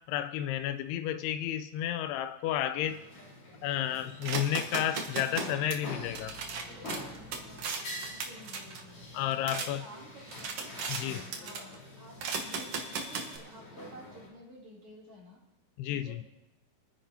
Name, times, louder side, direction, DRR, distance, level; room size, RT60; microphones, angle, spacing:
voice 1, 0.1-3.0 3.6-6.4 9.1-9.8 10.9-11.3 15.8-16.2, left 11 dB, 85° left, 11 dB, 2.6 m, -32 dB
sound 1, 2.8-14.3, left 1 dB, 65° left, 5.8 m, -46 dB
sound 2, 4.2-9.7 10.1-11.0 11.3-11.8 12.2-13.4, right 4 dB, 70° right, 1.4 m, -37 dB
voice 2, 8.1-9.0 9.5-10.7 11.3-15.4 15.9-16.2, right 1 dB, 40° right, -5 dB, 3.7 m, -52 dB
25.0 x 10.0 x 2.8 m, 0.93 s
omnidirectional pair, 4.5 m